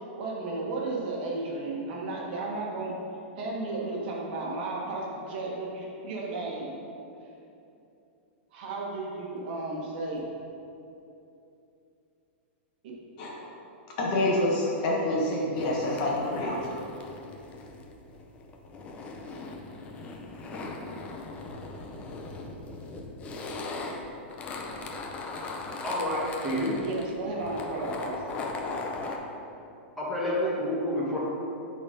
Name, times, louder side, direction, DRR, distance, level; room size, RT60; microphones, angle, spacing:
voice 1, 0.2-3.0 3.4-6.8 8.5-10.2 26.7-28.4, right 2 dB, 50° right, -3 dB, 1.4 m, -34 dB
voice 2, 13.2-13.5 14.0-16.8, left 1 dB, 45° left, -3 dB, 1.3 m, -27 dB
sound 1, 15.6-29.2, left 3 dB, 20° left, 0.5 m, -39 dB
voice 3, 25.8-26.8 30.0-31.2, left 1 dB, ahead, -9 dB, 1.5 m, -28 dB
8.9 x 4.0 x 3.9 m, 2.8 s
supercardioid pair, 160°, 6 cm